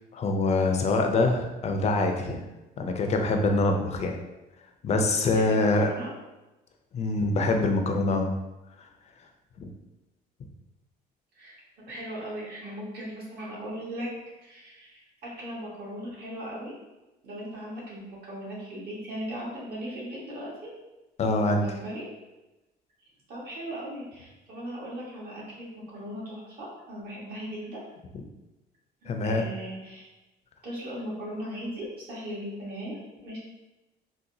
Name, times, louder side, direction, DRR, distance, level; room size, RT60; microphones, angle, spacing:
voice 1, 0.1-2.4 2.8-4.2 4.8-5.9 6.9-8.3 9.6-9.7 21.2-21.7 29.1-29.5, left 2 dB, 40° left, 4 dB, 0.5 m, -24 dB
voice 2, 5.3-6.1 11.3-11.6 11.9-14.1 14.4-16.7 17.2-20.7 21.4-22.1 23.3-27.8 29.0-30.1 30.6-33.0 33.2-33.4, equal, 65° right, -5 dB, 1.4 m, -38 dB
3.9 x 2.2 x 2.7 m, 1.0 s
cardioid pair, 110°, 17 cm